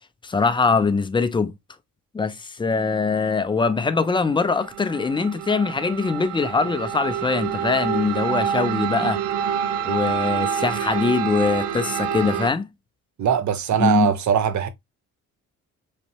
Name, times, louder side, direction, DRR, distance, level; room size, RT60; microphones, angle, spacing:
voice 1, 0.2-1.5 2.1-9.2 9.9-12.7 13.8-14.1, left 4 dB, 10° left, 0.4 m, -22 dB
sound 1, 4.0-12.5, right 8 dB, 75° right, 0.6 m, -27 dB
voice 2, 13.2-14.7, right 8 dB, 40° right, 0.8 m, -21 dB
5.1 x 2.0 x 2.7 m
figure-of-eight pair, 45°, 43 cm